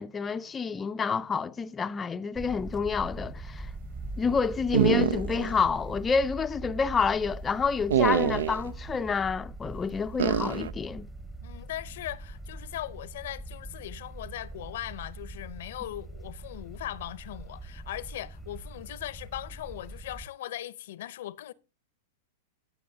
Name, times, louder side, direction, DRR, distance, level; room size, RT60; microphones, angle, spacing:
voice 1, 0.0-3.7 4.2-11.1, left 5 dB, 20° left, 0.5 m, -28 dB
sound 1, 2.3-20.3, right 2 dB, 15° right, 1.0 m, -42 dB
sound 2, 4.7-5.6 5.9-6.0 7.9-8.7 10.2-10.7, right 9 dB, 80° right, 0.5 m, -25 dB
voice 2, 11.4-21.5, left 13 dB, 65° left, 0.6 m, -39 dB
17.5 x 7.0 x 2.7 m
hypercardioid pair, 110°, 0 cm